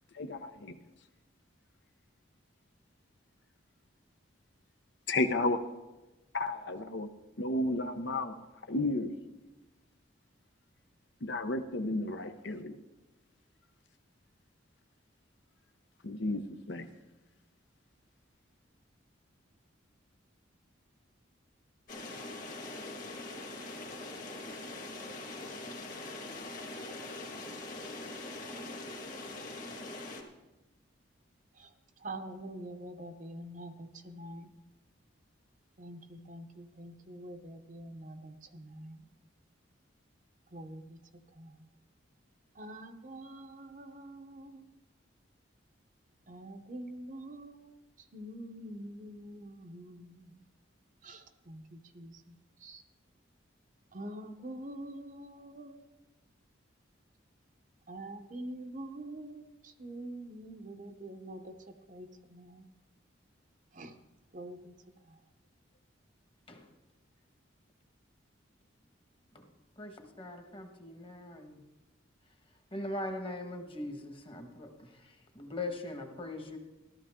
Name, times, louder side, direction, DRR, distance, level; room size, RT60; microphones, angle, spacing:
voice 1, 0.1-0.8 5.1-5.6 6.3-7.1 7.4-8.3 8.7-9.1 11.2-12.8 16.0-16.9, left 2 dB, 65° left, 8 dB, 0.8 m, -32 dB
sound 1, 21.9-30.2, left 2 dB, 40° left, 1.8 m, -42 dB
voice 2, 32.0-34.5 35.8-39.0 40.5-41.0 41.4-41.5 42.6-44.6 46.3-47.7 48.1-50.3 51.0-52.3 52.6-52.8 53.9-55.8 57.9-59.5 59.8-61.5 61.9-62.6 63.7-63.9 64.3-64.7, right 1 dB, 40° right, 7 dB, 0.8 m, -45 dB
voice 3, 70.2-71.6 72.7-74.7 75.3-76.6, left 2 dB, 25° left, 5 dB, 1.4 m, -40 dB
14.0 x 13.0 x 3.7 m, 1.1 s
head